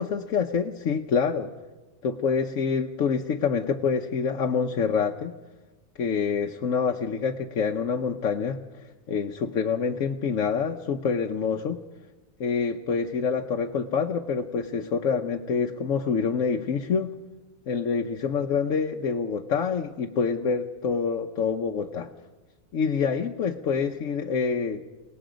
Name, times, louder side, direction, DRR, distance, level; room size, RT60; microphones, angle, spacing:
voice 1, 0.0-1.5 2.0-5.3 6.0-8.6 9.1-11.8 12.4-17.1 17.7-22.1 22.7-24.8, left 6 dB, 65° left, 2 dB, 1.1 m, -26 dB
29.5 x 18.0 x 5.1 m, 1.2 s
omnidirectional pair, 1.5 m